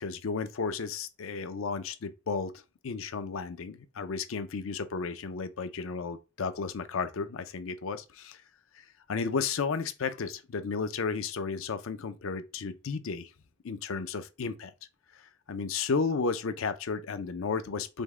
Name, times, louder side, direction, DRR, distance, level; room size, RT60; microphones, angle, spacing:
voice 1, 0.0-2.5 2.8-8.4 8.7-13.3 13.6-14.7 15.5-18.0, left 5 dB, 65° left, 0.5 m, -33 dB
5.1 x 2.1 x 3.5 m
head